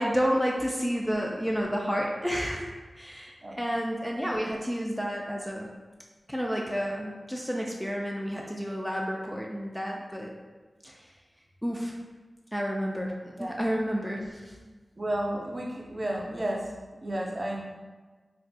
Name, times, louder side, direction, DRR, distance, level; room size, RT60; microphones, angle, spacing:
voice 1, 0.0-5.7 6.3-10.3 10.8-11.0 11.6-11.9 12.5-14.5, equal, ahead, -1 dB, 0.4 m, -30 dB
voice 2, 15.0-16.7 17.0-17.6, right 1 dB, 45° right, -2 dB, 0.6 m, -32 dB
3.9 x 2.5 x 2.2 m, 1.3 s
wide cardioid pair, 55°, 0 cm